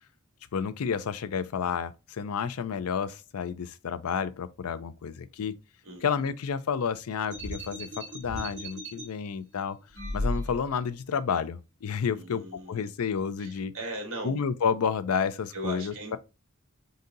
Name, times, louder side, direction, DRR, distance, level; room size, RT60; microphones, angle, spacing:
voice 1, 0.5-5.5 6.0-9.8 10.1-13.7 14.2-16.2, left 6 dB, 80° left, 0.4 m, -30 dB
voice 2, 5.8-6.3 12.1-12.9 13.4-14.4 15.5-16.2, right 1 dB, 70° right, 1.9 m, -39 dB
sound 1, 7.3-9.0 9.9-10.9, left 1 dB, 35° right, 1.8 m, -35 dB
4.0 x 2.7 x 3.8 m
head